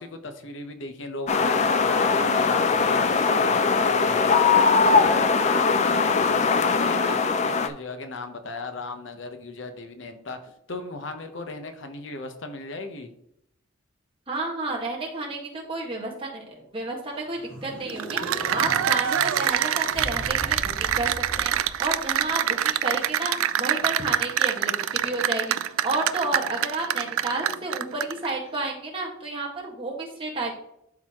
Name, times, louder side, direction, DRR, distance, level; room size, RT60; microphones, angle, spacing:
voice 1, 0.0-4.3 4.9-13.1, left 3 dB, 65° left, 6 dB, 0.9 m, -37 dB
sound 1, 1.3-7.7, left 4 dB, 35° left, 0.4 m, -21 dB
voice 2, 14.3-21.1 21.4-30.5, right 2 dB, 25° right, -2 dB, 1.6 m, -31 dB
sound 2, 17.1-22.4, equal, 5° left, 2.2 m, -39 dB
Cheering / Applause, 17.9-28.3, right 10 dB, 85° right, 0.4 m, -25 dB
12.0 x 4.0 x 3.0 m, 0.76 s
head